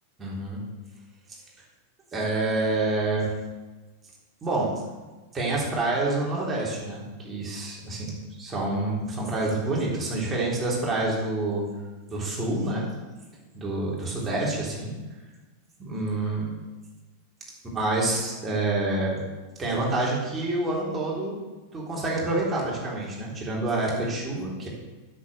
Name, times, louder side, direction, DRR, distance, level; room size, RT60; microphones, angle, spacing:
voice 1, 0.2-0.6 2.1-3.3 4.4-4.7 5.3-11.6 12.1-12.9 13.5-14.9 15.8-16.5 17.7-19.2 19.6-21.3 21.7-24.7, right 2 dB, 20° right, -4 dB, 3.6 m, -27 dB
8.2 x 7.5 x 6.7 m, 1.2 s
figure-of-eight pair, 90°, 0 cm